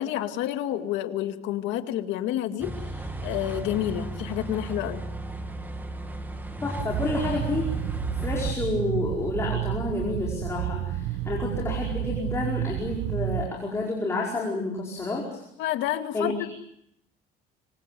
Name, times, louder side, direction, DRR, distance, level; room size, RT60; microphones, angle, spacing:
voice 1, 0.0-2.8 3.2-5.0 15.6-16.3, left 12 dB, 75° left, 7 dB, 2.2 m, -29 dB
sound 1, 2.6-8.5, right 1 dB, 10° right, 1.9 m, -35 dB
voice 2, 6.6-7.6 8.2-15.4 16.1-16.3, left 2 dB, 15° left, -2 dB, 5.0 m, -29 dB
sound 2, 6.8-13.5, right 15 dB, 65° right, 1.0 m, -30 dB
25.5 x 25.0 x 7.7 m, 0.75 s
cardioid pair, 180°, 19 cm